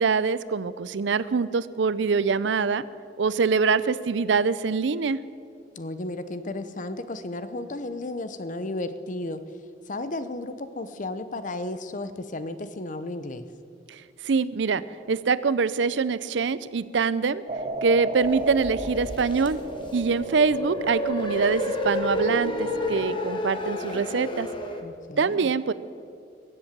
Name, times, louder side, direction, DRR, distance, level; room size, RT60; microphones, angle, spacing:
voice 1, 0.0-2.8 3.2-5.2 14.2-14.8 15.1-17.4 17.8-19.6 19.9-24.5 25.2-25.7, right 5 dB, 70° right, 17 dB, 0.5 m, -24 dB
voice 2, 5.8-9.6 9.9-13.5 24.8-25.5, left 2 dB, 45° left, 11 dB, 0.8 m, -34 dB
sound 1, 17.5-23.2, right 2 dB, 35° right, 1.0 m, -34 dB
sound 2, 18.2-24.8, left 1 dB, 25° left, 1.4 m, -31 dB
22.5 x 7.9 x 7.4 m, 2.4 s
head